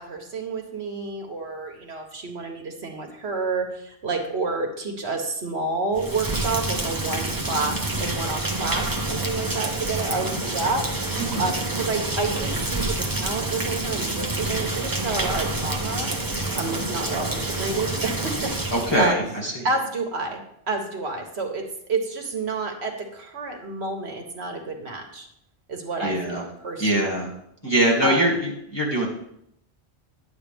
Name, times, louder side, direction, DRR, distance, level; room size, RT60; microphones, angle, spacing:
voice 1, 0.0-10.9 11.4-16.1 16.5-19.2 19.6-20.4 20.7-25.3 25.7-27.1 28.0-28.4, right 3 dB, 70° right, 3 dB, 1.5 m, -29 dB
Rain, 5.9-19.1, right 2 dB, 20° right, 1.0 m, -28 dB
voice 2, 11.2-11.5 18.7-19.7 26.0-26.4 26.8-27.3 27.6-29.1, right 1 dB, 25° left, -2 dB, 2.3 m, -23 dB
10.5 x 8.3 x 3.5 m, 0.75 s
omnidirectional pair, 1.1 m